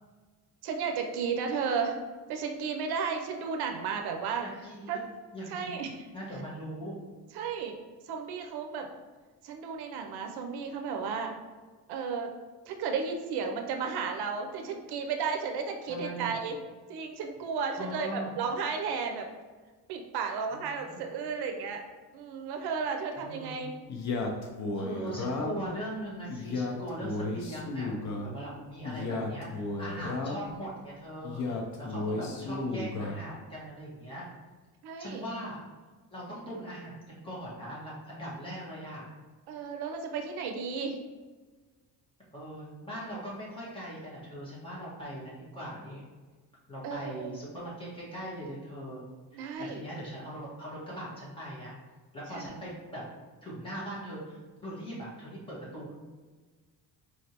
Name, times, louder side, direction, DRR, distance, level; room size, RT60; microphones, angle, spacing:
voice 1, 0.6-2.0 2.3-4.5 4.9-5.0 5.5-6.0 7.3-7.8 8.1-8.9 9.4-11.3 11.9-12.3 12.7-16.6 16.9-19.3 19.9-21.8 22.1-23.7 27.0-27.1 28.4-28.6 28.9-29.2 32.0-32.3 34.8-35.2 39.5-41.0 46.8-47.3 49.3-49.8, right 5 dB, 75° right, 4 dB, 0.6 m, -33 dB
voice 2, 4.4-5.0 5.3-5.7 6.1-7.0 15.9-16.3 17.8-18.3 20.5-21.0 23.2-23.6 24.7-28.0 28.2-34.3 35.0-35.6 36.1-39.1 42.3-46.0 46.7-49.0 49.3-51.7 52.1-53.0 53.4-56.0, right 1 dB, 15° left, -7 dB, 1.3 m, -40 dB
Male speech man speaking, 23.9-25.7 26.3-28.3 28.8-30.5 31.2-33.2, left 2 dB, 45° left, 0.6 m, -34 dB
4.5 x 3.2 x 2.8 m, 1.4 s
cardioid pair, 150°, 39 cm